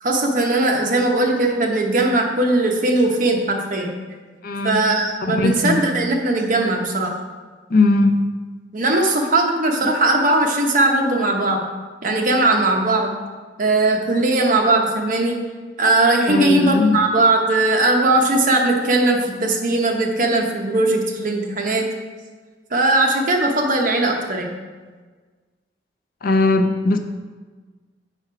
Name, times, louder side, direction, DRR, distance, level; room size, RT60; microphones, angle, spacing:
voice 1, 0.0-3.9 4.6-7.1 8.7-11.6 12.0-13.2 13.6-15.4 15.8-21.9 22.7-24.6, right 2 dB, 50° right, 1 dB, 0.9 m, -19 dB
voice 2, 4.4-4.8 5.2-5.8 7.7-8.2 9.1-9.2 16.3-17.0 26.2-27.0, left 2 dB, 55° left, 6 dB, 0.5 m, -19 dB
6.5 x 4.2 x 5.0 m, 1.4 s
head